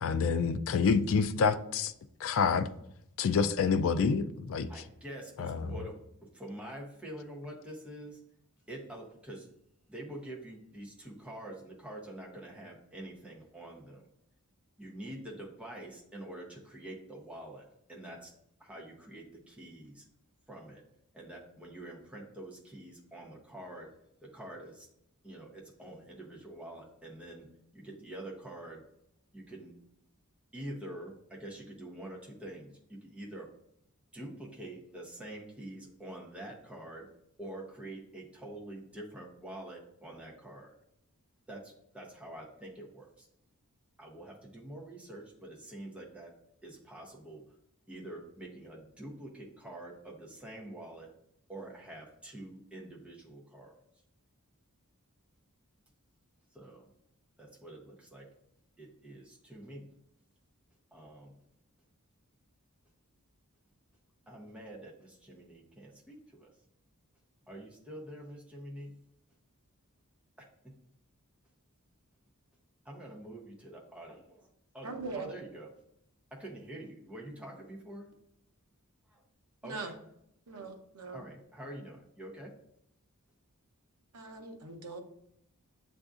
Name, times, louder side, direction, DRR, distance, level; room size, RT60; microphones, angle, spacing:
voice 1, 0.0-1.9 2.2-2.7 3.2-4.7 5.4-5.7, left 5 dB, 60° left, 0.3 m, -27 dB
voice 2, 4.7-8.2 8.7-9.5 9.9-14.1 14.8-18.3 18.6-20.0 20.5-20.8 21.1-23.9 24.2-24.9 25.2-27.5 27.7-28.8 29.3-29.8 30.5-33.5 34.1-37.1 37.4-40.8 41.5-43.3 44.0-46.3 46.6-47.4 47.9-51.1 51.5-53.8 56.5-56.9 57.4-58.3 58.8-59.9 60.9-61.3 64.3-66.5 67.5-68.9 70.4-70.5 72.8-74.5 74.7-74.9 75.1-75.7 76.3-78.0 79.1-79.2 79.6-79.9 81.1-82.5, right 1 dB, 5° right, 0.7 m, -46 dB
voice 3, 74.8-75.3 79.6-79.9 80.5-81.2 84.1-85.0, right 3 dB, 85° right, 0.8 m, -41 dB
7.6 x 2.6 x 2.4 m
head